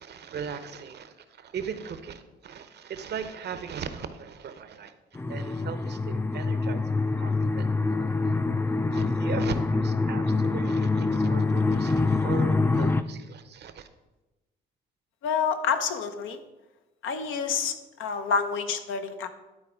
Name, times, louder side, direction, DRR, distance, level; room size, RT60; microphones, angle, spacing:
voice 1, 0.0-7.7 8.9-13.9, right 7 dB, 60° right, 10 dB, 0.8 m, -38 dB
sound 1, 5.1-13.0, left 3 dB, 10° left, 0.4 m, -25 dB
voice 2, 15.2-16.4 17.0-19.3, left 6 dB, 85° left, 7 dB, 0.9 m, -28 dB
11.0 x 4.1 x 5.0 m, 1.1 s
cardioid pair, 90°, 20 cm